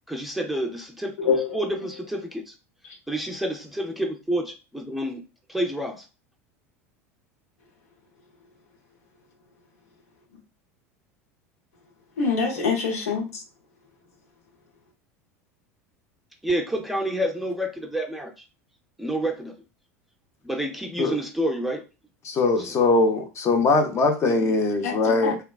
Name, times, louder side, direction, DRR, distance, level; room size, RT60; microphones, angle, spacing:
voice 1, 0.1-2.5 3.1-5.2 5.5-6.1 16.4-18.3 19.0-19.6 20.4-21.8 22.6-22.8, right 1 dB, ahead, 0.5 m, -29 dB
voice 2, 1.2-1.6 12.2-13.3 24.4-24.5 24.8-25.4, left 5 dB, 75° left, 0.7 m, -25 dB
voice 3, 22.2-25.4, left 3 dB, 35° left, 0.7 m, -21 dB
3.3 x 2.1 x 2.3 m
hypercardioid pair, 80°, 8 cm